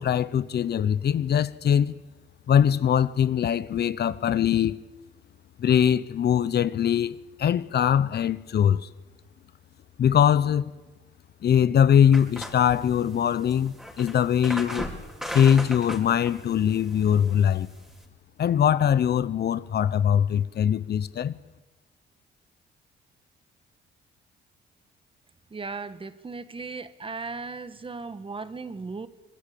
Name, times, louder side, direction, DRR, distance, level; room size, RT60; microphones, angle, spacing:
voice 1, 0.0-2.0 2.5-4.7 5.6-8.9 10.0-10.7 11.4-14.9 15.3-17.7 18.4-21.3, left 9 dB, 55° left, 0.9 m, -22 dB
sound 1, 12.1-18.1, equal, 5° right, 4.7 m, -38 dB
voice 2, 25.5-29.1, right 4 dB, 25° right, 1.3 m, -36 dB
24.5 x 20.5 x 8.6 m
cardioid pair, 90°, 20 cm